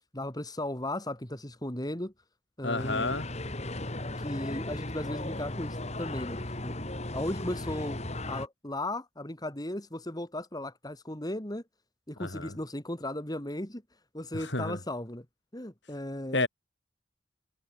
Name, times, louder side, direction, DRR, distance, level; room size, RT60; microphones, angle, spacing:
voice 1, 0.1-2.1 2.6-3.2 4.2-6.7 7.1-11.6 12.1-13.8 14.1-15.2 15.5-16.5, left 1 dB, 20° left, 2.9 m, -36 dB
voice 2, 2.6-3.3 12.2-12.6 14.3-14.8 16.3-16.5, left 2 dB, 65° left, 7.1 m, -30 dB
sound 1, 2.8-8.5, left 1 dB, 35° left, 3.2 m, -36 dB
head